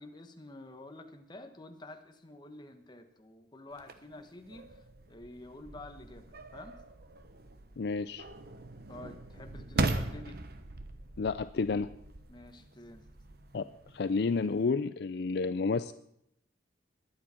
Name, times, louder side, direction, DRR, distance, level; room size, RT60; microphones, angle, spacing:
voice 1, 0.0-6.8 8.9-10.4 12.3-13.0, left 2 dB, 25° left, 6 dB, 1.2 m, -49 dB
sound 1, 3.7-14.7, right 2 dB, 60° right, 1.1 m, -40 dB
voice 2, 7.8-8.3 11.2-11.9 13.5-13.6 13.9-15.9, left 4 dB, 60° left, 12 dB, 0.4 m, -30 dB
21.5 x 8.5 x 4.4 m, 0.74 s
head